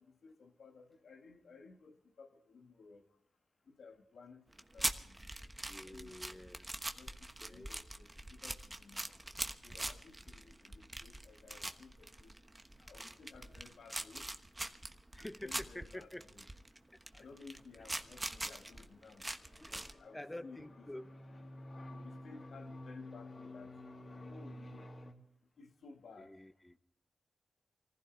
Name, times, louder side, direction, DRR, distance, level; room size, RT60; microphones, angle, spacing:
voice 1, 0.0-3.1 3.7-4.5 4.7-5.3 5.8-6.4 7.0-9.2 9.6-12.3 12.8-14.3 15.2-16.4 17.1-19.3 19.7-20.7 21.9-23.8 24.3-24.9 25.6-26.4, left 4 dB, 75° left, 1.9 m, -57 dB
sound 1, 4.5-19.9, right 1 dB, 20° right, 1.2 m, -43 dB
voice 2, 5.7-6.7 7.4-7.7 15.1-16.3 19.6-19.7 20.1-21.1 26.2-26.8, left 1 dB, 15° left, 0.9 m, -48 dB
sound 2, 18.1-25.1, left 1 dB, 55° left, 2.8 m, -51 dB
25.0 x 15.5 x 3.5 m
cardioid pair, 45°, 0 cm